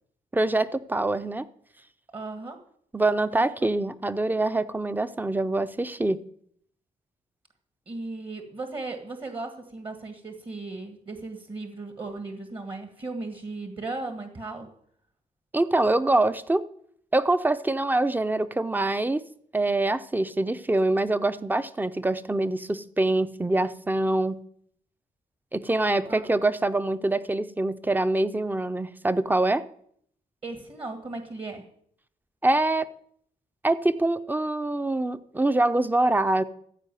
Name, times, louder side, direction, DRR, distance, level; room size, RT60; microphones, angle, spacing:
voice 1, 0.3-1.5 2.9-6.3 15.5-16.6 17.1-19.2 19.5-24.4 25.5-29.6 32.4-32.9 33.6-36.4, right 2 dB, 15° right, 13 dB, 0.6 m, -24 dB
voice 2, 2.1-2.6 3.3-3.7 7.9-14.7 26.1-26.3 30.4-31.7, right 3 dB, 40° right, 6 dB, 1.7 m, -36 dB
14.5 x 4.8 x 9.1 m, 0.66 s
cardioid pair, 90°, 14 cm